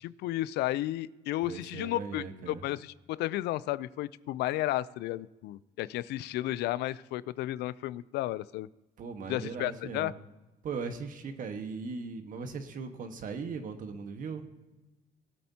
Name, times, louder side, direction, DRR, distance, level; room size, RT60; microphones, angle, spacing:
voice 1, 0.0-8.7 9.3-10.1, left 15 dB, 80° left, 19 dB, 0.4 m, -33 dB
voice 2, 1.4-2.6 9.0-10.1 10.6-14.4, right 5 dB, 55° right, 7 dB, 1.4 m, -38 dB
20.0 x 8.6 x 2.8 m, 1.1 s
cardioid pair, 110°, 17 cm